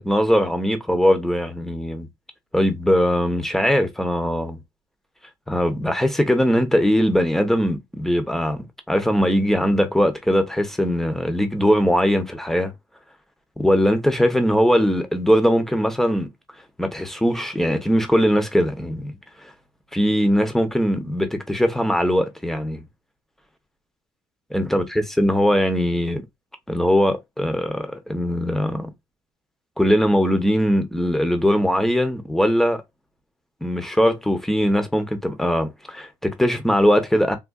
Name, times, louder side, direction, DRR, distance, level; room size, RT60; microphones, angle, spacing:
voice 1, 0.0-2.1 2.5-4.6 5.5-12.7 13.6-16.3 16.8-19.1 19.9-22.8 24.5-24.8 25.2-26.2 26.7-28.9 29.8-32.8 33.6-37.4, equal, 5° left, 0.7 m, -20 dB
3.6 x 2.4 x 2.3 m
cardioid pair, 110°, 10 cm